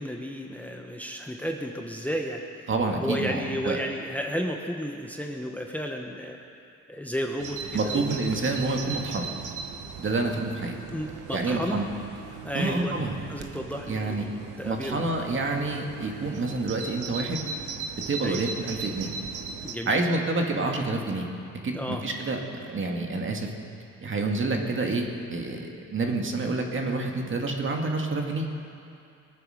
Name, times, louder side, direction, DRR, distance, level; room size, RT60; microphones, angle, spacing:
voice 1, 0.0-2.4 3.0-6.4 6.9-8.0 10.9-11.8 12.4-13.0 13.3-15.0 18.2-18.4 19.6-20.0 21.7-22.0, equal, 5° left, 2 dB, 1.1 m, -32 dB
voice 2, 2.7-3.8 7.7-9.3 10.0-10.7 11.3-11.9 12.5-13.2 13.9-14.3 14.6-17.4 18.1-19.1 19.9-21.3 21.6-23.5 24.0-28.5, right 3 dB, 40° right, 2 dB, 2.0 m, -28 dB
Bird vocalization bird call bird song, 7.4-19.7, right 5 dB, 85° right, 1.3 m, -38 dB
21.0 x 9.0 x 6.5 m, 2.5 s
cardioid pair, 90°, 30 cm